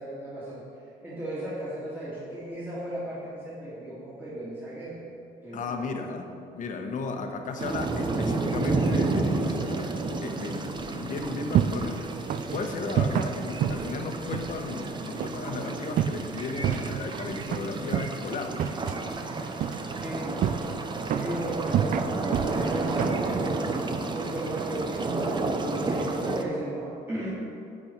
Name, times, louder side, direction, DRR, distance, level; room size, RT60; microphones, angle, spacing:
voice 1, 0.0-5.0 5.4-5.9 19.9-20.4 21.1-23.7 24.0-27.3, right 1 dB, 10° right, -9 dB, 2.5 m, -36 dB
voice 2, 5.5-12.0 12.5-18.8, left 4 dB, 50° left, 4 dB, 1.2 m, -35 dB
sound 1, 7.6-26.4, right 3 dB, 25° right, 0.8 m, -31 dB
sound 2, 11.1-24.6, right 9 dB, 55° right, 0.4 m, -31 dB
10.0 x 8.6 x 4.6 m, 2.6 s
cardioid pair, 110°, 17 cm